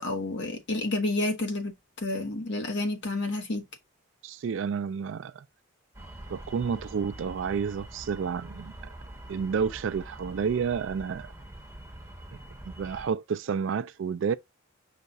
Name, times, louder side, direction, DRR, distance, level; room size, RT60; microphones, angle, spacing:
voice 1, 0.0-3.6, left 2 dB, 55° left, 1.1 m, -30 dB
voice 2, 4.2-5.4 6.3-8.7 9.3-11.3 12.8-14.3, right 6 dB, 60° right, 0.3 m, -30 dB
sound 1, 5.9-13.1, right 1 dB, 15° right, 1.2 m, -45 dB
5.7 x 2.4 x 3.9 m
head